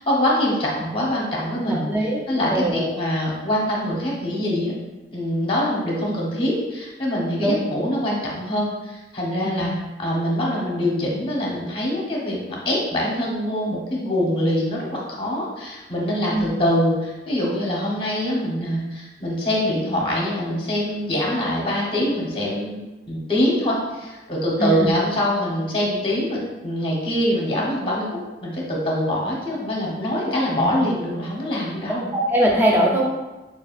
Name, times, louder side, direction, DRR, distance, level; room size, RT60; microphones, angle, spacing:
voice 1, 0.0-1.9 2.3-4.7 5.1-9.7 10.0-12.4 12.6-32.1, left 1 dB, 30° left, -3 dB, 1.0 m, -24 dB
voice 2, 1.6-3.0 7.4-7.6 9.4-9.7 16.3-16.5 24.6-24.9 30.5-30.8 32.1-33.0, right 1 dB, 10° right, -3 dB, 0.6 m, -22 dB
6.1 x 2.5 x 2.5 m, 1.1 s
head